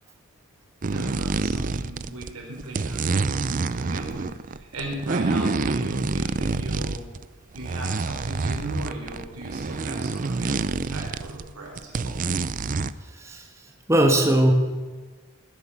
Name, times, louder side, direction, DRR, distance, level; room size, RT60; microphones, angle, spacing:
sound 1, 0.8-2.3 2.6-7.2 7.5-11.5 11.8-12.9, right 3 dB, 35° right, 0.5 m, -27 dB
voice 1, 0.9-7.2 7.5-12.3, right 1 dB, 85° right, 0 dB, 4.6 m, -37 dB
voice 2, 13.0-14.5, right 1 dB, 15° right, 2 dB, 1.5 m, -21 dB
20.5 x 8.3 x 7.1 m, 1.4 s
head